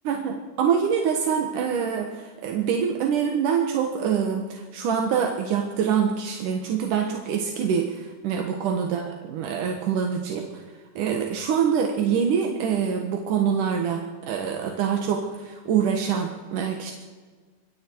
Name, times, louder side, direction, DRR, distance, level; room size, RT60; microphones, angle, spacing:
voice 1, 0.0-10.6 11.0-16.9, right 7 dB, 80° right, 3 dB, 3.0 m, -25 dB
25.5 x 22.5 x 4.6 m, 1.5 s
omnidirectional pair, 3.6 m